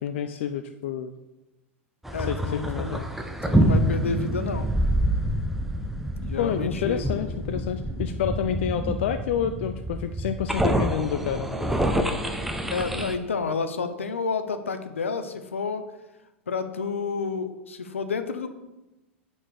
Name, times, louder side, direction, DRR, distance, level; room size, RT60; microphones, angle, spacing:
voice 1, 0.0-1.1 2.2-3.1 6.4-11.5, left 9 dB, 65° left, 9 dB, 0.5 m, -29 dB
sound 1, 2.0-13.1, right 1 dB, 5° right, 0.9 m, -27 dB
voice 2, 2.1-3.0 3.4-4.7 6.2-7.0 12.7-15.8 16.5-18.5, left 4 dB, 85° left, 9 dB, 0.8 m, -30 dB
9.0 x 4.5 x 6.6 m, 1.0 s
hypercardioid pair, 90°, 7 cm